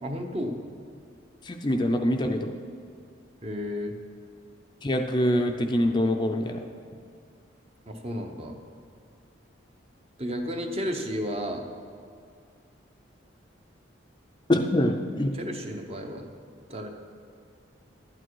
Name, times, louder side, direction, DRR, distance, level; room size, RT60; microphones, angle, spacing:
voice 1, 0.0-0.6 3.4-3.9 7.9-8.5 10.2-11.6 15.3-16.3 16.7-16.9, equal, 30° right, 4 dB, 0.9 m, -32 dB
voice 2, 1.4-2.5 4.8-6.6 14.5-15.3, left 1 dB, 25° left, 4 dB, 0.5 m, -24 dB
12.0 x 8.9 x 4.7 m, 2.4 s
head